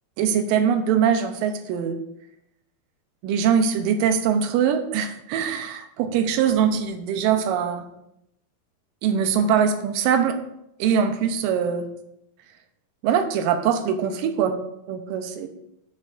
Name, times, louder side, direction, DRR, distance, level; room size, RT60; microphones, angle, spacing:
voice 1, 0.2-2.0 3.2-7.9 9.0-10.4 10.8-11.9 13.0-14.6 14.9-15.5, right 7 dB, 75° right, 7 dB, 2.1 m, -22 dB
15.5 x 6.2 x 2.6 m, 0.81 s
omnidirectional pair, 4.7 m